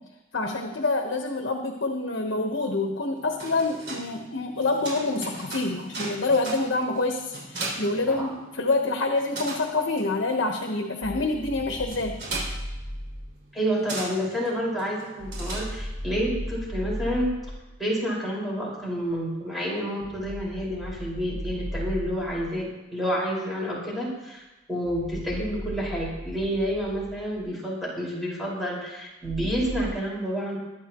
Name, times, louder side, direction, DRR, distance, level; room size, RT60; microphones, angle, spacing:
voice 1, 0.3-12.2, left 3 dB, 70° left, 2 dB, 1.2 m, -27 dB
sound 1, 3.2-8.8 9.0-16.1, right 2 dB, 65° right, 6.0 m, -38 dB
sound 2, 11.0-13.3 15.2-17.7 20.0-22.6 24.8-27.4 29.2-29.9, equal, 40° left, 4.4 m, -36 dB
voice 2, 13.5-17.3 17.8-22.6 22.9-24.4 24.7-30.6, equal, ahead, -6 dB, 5.2 m, -29 dB
22.5 x 10.5 x 3.1 m, 1.0 s
head